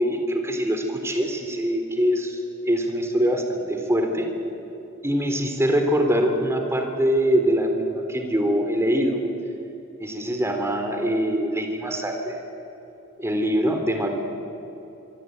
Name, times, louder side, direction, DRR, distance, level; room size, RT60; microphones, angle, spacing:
voice 1, 0.0-4.3 5.0-9.2 10.0-12.4 13.2-14.1, equal, 10° right, 5 dB, 3.3 m, -23 dB
25.0 x 24.0 x 9.3 m, 2.9 s
head